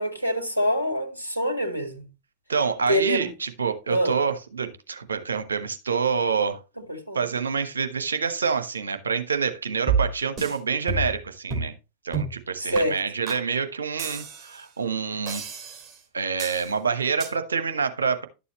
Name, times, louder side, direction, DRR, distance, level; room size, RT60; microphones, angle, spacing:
voice 1, 0.0-2.0 2.9-3.3 3.9-4.2 6.8-7.2 12.6-13.0, equal, 90° left, 1.9 m, -25 dB
voice 2, 2.5-6.6 7.1-11.7 12.0-15.4 16.1-18.3, right 5 dB, 75° right, 1.2 m, -27 dB
sound 1, 9.9-10.6 10.9-11.2 11.5-11.7 12.1-12.4 12.7-12.8 13.3-13.4 14.0-14.6 15.3-16.0 16.4-16.7 17.2-17.3, right 5 dB, 25° right, 3.2 m, -29 dB
11.5 x 6.9 x 3.0 m
figure-of-eight pair, 90°, 0 cm